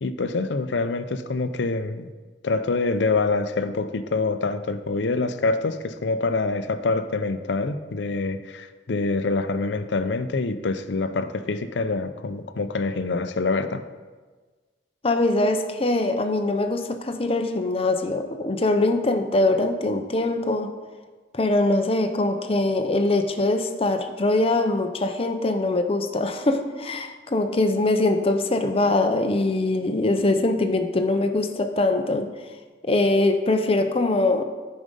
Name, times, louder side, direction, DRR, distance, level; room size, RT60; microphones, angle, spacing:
voice 1, 0.0-2.1 2.4-13.8, left 3 dB, 80° left, 10 dB, 0.6 m, -25 dB
voice 2, 15.0-20.7 21.3-32.3 32.8-34.4, left 2 dB, 35° left, 7 dB, 0.7 m, -22 dB
9.8 x 5.2 x 5.3 m, 1.4 s
head